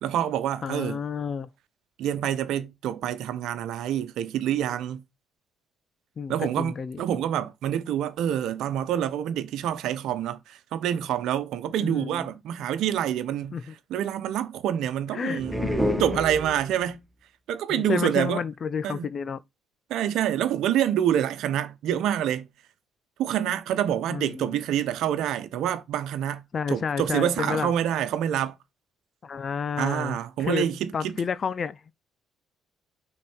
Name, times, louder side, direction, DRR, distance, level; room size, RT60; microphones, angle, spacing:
voice 1, 0.0-1.0 2.0-5.0 6.3-13.6 13.9-15.6 16.0-17.0 17.5-18.4 18.8-19.1 19.9-22.5 23.2-26.4 26.7-28.5 29.8-31.1, right 10 dB, 75° right, 0.9 m, -27 dB
voice 2, 0.6-1.5 6.2-7.0 11.8-12.3 13.5-13.7 15.1-15.7 17.7-19.4 24.1-24.6 26.5-27.7 29.2-30.7 30.9-31.8, left 6 dB, 45° left, 0.5 m, -30 dB
sound 1, 15.4-17.0, equal, 5° right, 1.4 m, -28 dB
6.2 x 4.1 x 4.4 m
supercardioid pair, 75°, 0 cm